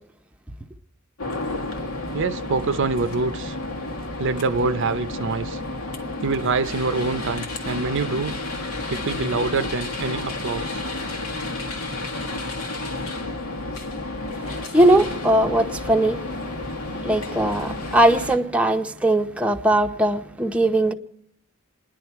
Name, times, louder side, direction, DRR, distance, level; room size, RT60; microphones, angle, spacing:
sound 1, 1.2-18.4, left 2 dB, 90° left, 1.7 m, -31 dB
voice 1, 2.1-3.6 4.2-5.6 6.2-8.4 8.9-10.8 13.7-13.8, right 4 dB, 60° right, 0.6 m, -25 dB
voice 2, 14.4-16.2 17.0-20.9, right 1 dB, 5° right, 0.7 m, -20 dB
28.5 x 10.5 x 4.6 m
head